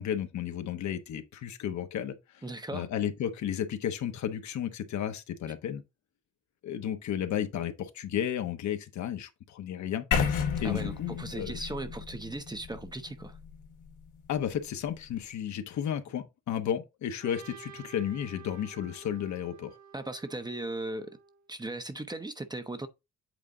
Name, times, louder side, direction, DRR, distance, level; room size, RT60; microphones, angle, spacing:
voice 1, 0.0-2.4 2.7-5.8 6.6-10.1 10.6-11.7 14.3-19.7, left 9 dB, 70° left, 1.1 m, -33 dB
voice 2, 2.4-2.9 10.6-13.4 19.9-21.2 21.5-22.9, right 2 dB, 15° right, 0.8 m, -37 dB
sound 1, 10.1-14.1, left 6 dB, 85° left, 2.0 m, -32 dB
Trumpet, 17.2-21.4, right 7 dB, 70° right, 1.8 m, -51 dB
8.2 x 3.7 x 3.7 m
cardioid pair, 90°, 30 cm